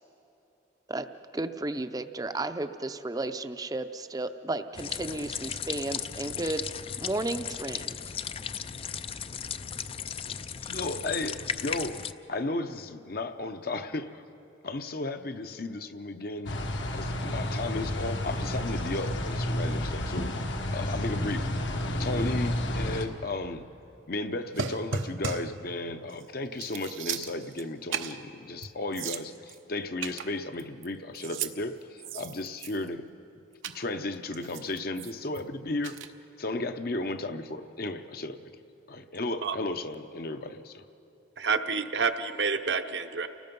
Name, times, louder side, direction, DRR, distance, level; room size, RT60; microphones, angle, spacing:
voice 1, 1.3-6.6 7.0-7.9, right 2 dB, 20° right, 10 dB, 0.5 m, -33 dB
sound 1, 4.8-12.1, left 7 dB, 30° left, 0.4 m, -36 dB
voice 2, 10.6-12.0 12.3-14.2 14.6-16.5 16.9-20.5 20.7-21.5 22.0-23.6 24.1-33.1 33.6-36.0 36.4-38.4 38.9-40.8, left 2 dB, 50° left, 8 dB, 0.8 m, -34 dB
sound 2, 16.5-23.1, left 1 dB, 70° left, 1.5 m, -31 dB
sound 3, 24.5-25.6 26.1-26.2 26.5-27.6 27.9-28.2 28.6-28.7 28.9-29.6 30.0-30.9 31.1-31.5 32.0-32.9 33.6-33.8 34.3-35.4 35.8-36.1, right 6 dB, 85° right, 0.9 m, -35 dB
voice 3, 41.4-43.3, right 5 dB, 60° right, 7 dB, 0.8 m, -28 dB
29.5 x 18.5 x 5.4 m, 3.0 s
head